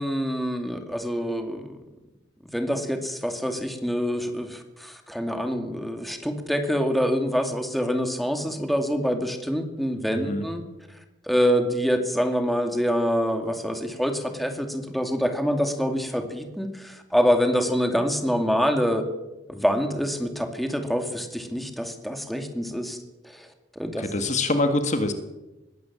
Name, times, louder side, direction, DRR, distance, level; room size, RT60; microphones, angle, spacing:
voice 1, 0.0-1.8 2.5-10.6 11.3-19.1 19.5-23.0 23.2-23.5 23.8-24.0, equal, ahead, 5 dB, 2.5 m, -26 dB
voice 2, 24.0-25.1, left 2 dB, 45° left, 7 dB, 1.8 m, -24 dB
21.0 x 17.0 x 7.5 m, 1.0 s
head